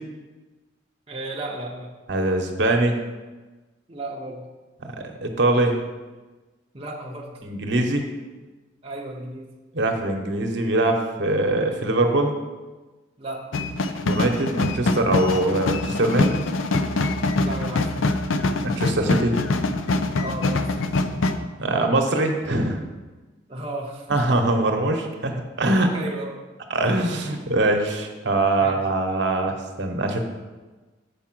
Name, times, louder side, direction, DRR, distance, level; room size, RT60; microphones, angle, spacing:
voice 1, 1.1-1.9 3.9-4.5 6.7-7.5 8.8-9.5 13.2-13.5 17.4-18.2 20.2-20.9 23.5-24.2 25.8-26.5 27.3-27.4 28.6-28.8, right 1 dB, 30° right, -2 dB, 0.6 m, -34 dB
voice 2, 2.1-3.0 4.8-4.9 5.2-5.8 7.4-8.0 9.7-12.3 14.1-16.4 18.6-19.3 21.6-22.8 24.1-25.9 26.7-30.2, right 2 dB, 65° right, 3 dB, 0.9 m, -22 dB
sound 1, 13.5-21.4, left 2 dB, 90° left, 0.5 m, -24 dB
7.0 x 4.8 x 6.0 m, 1.2 s
head